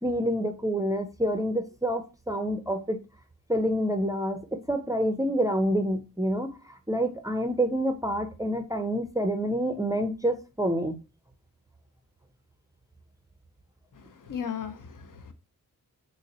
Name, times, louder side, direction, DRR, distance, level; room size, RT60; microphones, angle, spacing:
voice 1, 0.0-3.0 3.5-11.0, equal, 10° right, 0.4 m, -27 dB
voice 2, 13.9-15.3, left 8 dB, 60° left, 0.7 m, -37 dB
3.9 x 2.0 x 3.9 m
cardioid pair, 75°, 36 cm